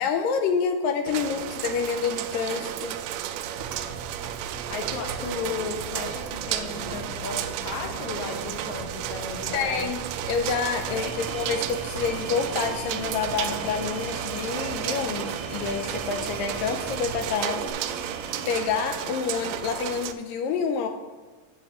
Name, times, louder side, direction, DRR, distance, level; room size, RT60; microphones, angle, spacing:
voice 1, 0.0-3.0 9.5-10.0 10.3-17.7 18.5-20.9, left 6 dB, 80° left, 5 dB, 2.1 m, -28 dB
sound 1, 1.1-20.1, right 11 dB, 85° right, 2.5 m, -33 dB
sound 2, 3.5-17.7, right 2 dB, 45° left, 1.6 m, -41 dB
voice 2, 4.7-9.9 10.9-11.2, left 5 dB, 60° left, 2 dB, 2.3 m, -35 dB
sound 3, 10.9-18.6, right 4 dB, 65° right, 1.9 m, -39 dB
15.0 x 7.2 x 3.1 m, 1.3 s
omnidirectional pair, 4.4 m